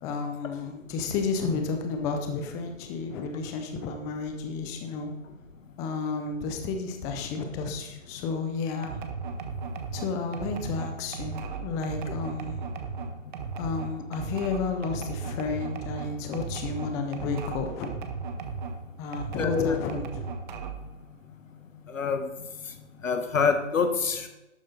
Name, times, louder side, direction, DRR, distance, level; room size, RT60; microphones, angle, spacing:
voice 1, 0.0-5.1 5.8-8.9 9.9-12.6 13.6-17.9 19.0-20.3, left 4 dB, 10° left, 5 dB, 0.6 m, -32 dB
sound 1, 8.8-18.8 19.1-20.9, right 5 dB, 40° right, 1.4 m, -36 dB
voice 2, 19.4-19.8 21.9-22.3 23.0-24.3, left 5 dB, 80° left, 7 dB, 1.6 m, -26 dB
12.0 x 8.6 x 4.1 m, 1.0 s
hypercardioid pair, 145°, 39 cm